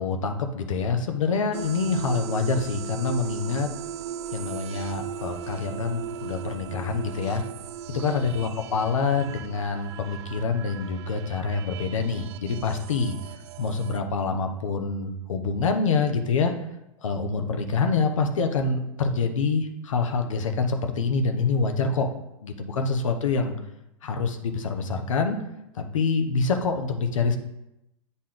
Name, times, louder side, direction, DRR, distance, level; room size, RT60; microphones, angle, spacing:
voice 1, 0.0-3.7 4.3-7.4 7.9-13.1 13.6-16.5 17.0-22.1 22.4-23.5 24.0-25.4 25.7-27.4, left 4 dB, 70° left, 5 dB, 1.0 m, -26 dB
sound 1, 1.5-14.0, right 9 dB, 55° right, 0.4 m, -38 dB
8.6 x 4.1 x 3.8 m, 0.87 s
hypercardioid pair, 105°, 17 cm